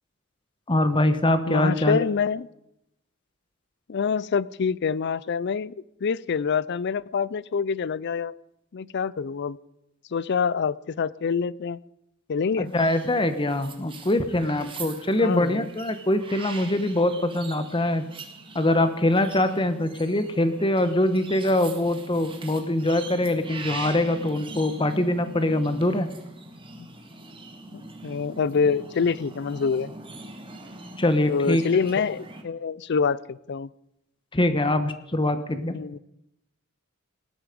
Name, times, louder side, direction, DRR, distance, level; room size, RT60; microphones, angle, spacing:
voice 1, 0.7-2.0 12.6-18.0 18.5-26.1 31.0-31.6 34.3-35.7, left 1 dB, 25° left, 10 dB, 1.1 m, -23 dB
voice 2, 1.5-2.5 3.9-5.7 6.0-8.3 8.7-9.6 10.1-11.8 12.3-12.7 15.2-15.7 28.0-29.9 31.3-33.7 35.7-36.0, left 5 dB, 55° left, 21 dB, 0.4 m, -26 dB
sound 1, 12.7-32.4, right 3 dB, 25° right, 1.8 m, -42 dB
18.5 x 12.5 x 5.3 m, 0.85 s
head